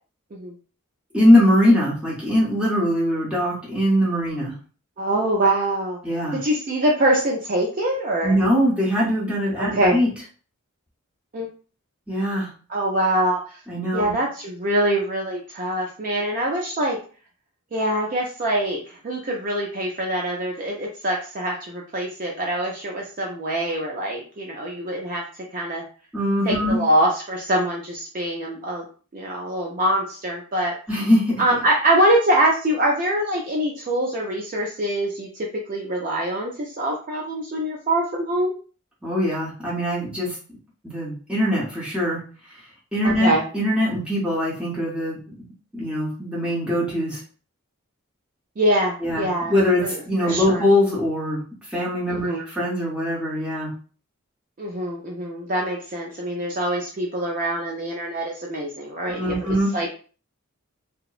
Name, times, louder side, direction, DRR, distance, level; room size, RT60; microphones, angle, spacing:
voice 1, 1.1-4.5 6.0-6.4 8.2-10.1 12.1-12.5 13.7-14.1 26.1-26.8 30.9-31.4 39.0-40.4 40.8-42.3 42.9-45.5 45.7-47.2 49.0-51.4 51.7-53.7 59.1-59.7, left 1 dB, 5° right, -6 dB, 0.8 m, -22 dB
voice 2, 5.0-6.0 6.3-8.4 9.6-10.0 11.3-11.5 12.7-13.4 13.9-17.0 17.7-25.2 25.5-25.9 26.5-28.9 29.1-30.8 31.4-38.6 43.0-43.4 48.6-49.5 49.8-50.0 50.2-50.6 52.1-52.4 54.6-59.5 59.7-59.9, right 1 dB, 40° right, -1 dB, 0.4 m, -24 dB
2.8 x 2.0 x 2.3 m, 0.38 s
head